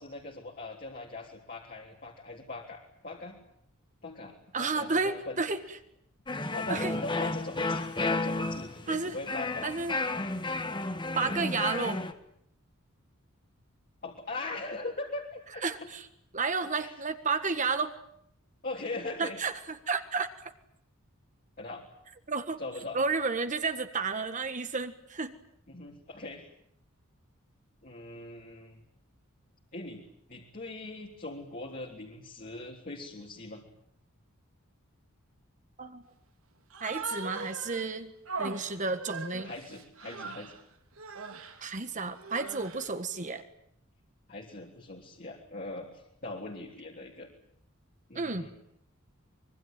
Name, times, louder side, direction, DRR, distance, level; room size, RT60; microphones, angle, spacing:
voice 1, 0.0-3.4 4.0-5.4 6.5-9.7 14.0-15.6 16.8-16.9 18.6-19.4 21.6-21.9 22.6-23.0 25.7-26.4 27.8-28.8 29.7-33.6 39.4-40.6 44.3-47.3 48.1-48.5, left 2 dB, 45° left, -2 dB, 3.4 m, -41 dB
voice 2, 4.5-5.6 6.7-6.9 8.9-9.2 9.6-10.0 10.5-10.6 11.2-12.0 15.6-16.1 16.3-17.9 19.2-20.5 22.3-22.6 22.9-25.3 35.8-36.0 36.8-38.1 38.4-39.5 41.6-43.4 48.2-48.5, right 4 dB, 35° right, 9 dB, 1.7 m, -31 dB
sound 1, 6.3-12.1, left 2 dB, 20° left, 1.7 m, -32 dB
Human voice, 36.7-37.9 38.3-40.6 41.0-41.6 42.2-42.9, right 4 dB, 80° right, 3.0 m, -40 dB
25.0 x 23.0 x 9.2 m, 0.73 s
head